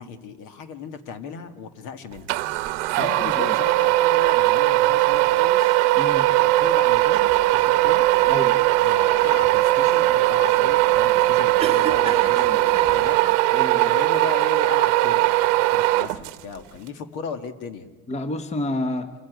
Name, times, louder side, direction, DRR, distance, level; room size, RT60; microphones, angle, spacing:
voice 1, 0.0-2.3 3.0-5.8 6.4-8.0 8.8-13.2 13.8-17.9, left 5 dB, 65° left, 8 dB, 1.9 m, -36 dB
sound 1, 2.3-16.6, right 18 dB, 85° right, 0.9 m, -19 dB
voice 2, 2.9-3.6 5.9-6.3 8.3-8.6 12.3-12.6 13.5-13.9 18.1-19.1, left 1 dB, 20° left, 9 dB, 1.1 m, -30 dB
sound 2, 7.1-13.4, right 6 dB, 15° right, 1.1 m, -37 dB
26.5 x 15.0 x 9.3 m, 1.4 s
cardioid pair, 140°, 34 cm